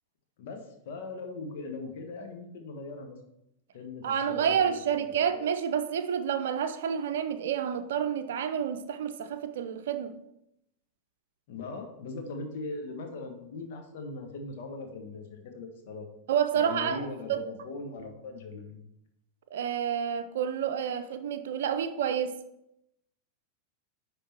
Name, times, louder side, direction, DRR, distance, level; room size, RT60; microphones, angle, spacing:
voice 1, 0.4-3.2 3.7-5.1 11.5-16.1 16.5-18.8, left 3 dB, 50° left, 1.3 m, -40 dB
voice 2, 4.0-10.2 16.3-17.4 19.5-22.4, right 8 dB, 60° right, 0.6 m, -29 dB
10.0 x 3.7 x 4.4 m
figure-of-eight pair, 90°, 0 cm